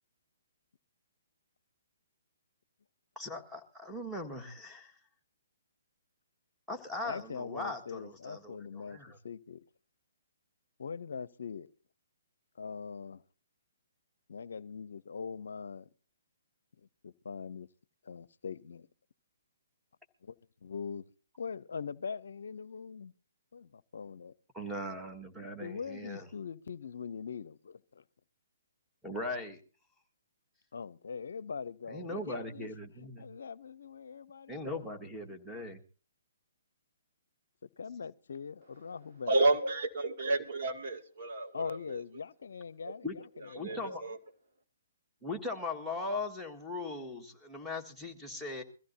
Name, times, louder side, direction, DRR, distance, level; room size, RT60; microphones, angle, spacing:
voice 1, 3.2-4.9 6.7-9.2 24.5-26.3 29.0-29.6 31.9-33.3 34.5-35.8 43.0-43.2 43.5-44.0 45.2-48.6, left 2 dB, ahead, 1.8 m, -39 dB
voice 2, 7.0-9.0 9.2-9.6 10.8-11.7 12.6-13.2 14.3-15.9 17.0-17.7 18.1-18.9 20.2-20.3 20.6-21.0 21.4-23.1 23.5-24.3 25.6-28.0 30.7-32.7 33.0-34.8 37.6-39.3 41.5-43.1 43.6-43.9, left 6 dB, 70° left, 0.6 m, -42 dB
voice 3, 39.3-42.0 42.8-42.9 43.4-44.2, right 2 dB, 50° right, 2.4 m, -31 dB
23.0 x 15.0 x 2.8 m
figure-of-eight pair, 135°, 0 cm